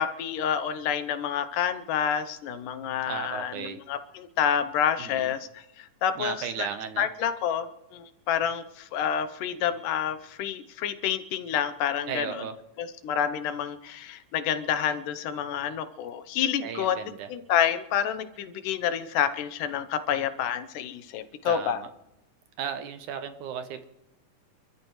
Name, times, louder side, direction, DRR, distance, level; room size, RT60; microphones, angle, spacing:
voice 1, 0.0-6.7 7.0-12.4 12.8-17.0 17.3-21.8, left 9 dB, 80° left, 11 dB, 2.5 m, -28 dB
voice 2, 3.1-3.8 5.0-5.3 6.2-7.1 12.1-12.6 16.6-17.3 21.4-21.9 22.6-23.9, right 8 dB, 70° right, 9 dB, 2.4 m, -35 dB
28.5 x 13.5 x 3.2 m, 0.86 s
omnidirectional pair, 3.8 m